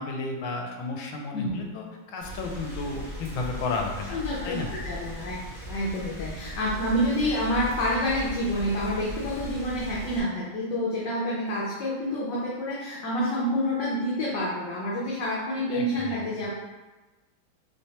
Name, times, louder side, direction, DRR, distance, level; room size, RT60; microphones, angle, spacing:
voice 1, 0.0-4.7 15.7-16.5, left 3 dB, 85° left, 2 dB, 1.4 m, -33 dB
voice 2, 1.3-1.7 4.1-16.5, equal, 70° left, -6 dB, 1.2 m, -28 dB
Rain, 2.2-10.2, right 1 dB, 10° right, 1.0 m, -38 dB
3.3 x 3.3 x 2.8 m, 1.2 s
omnidirectional pair, 2.2 m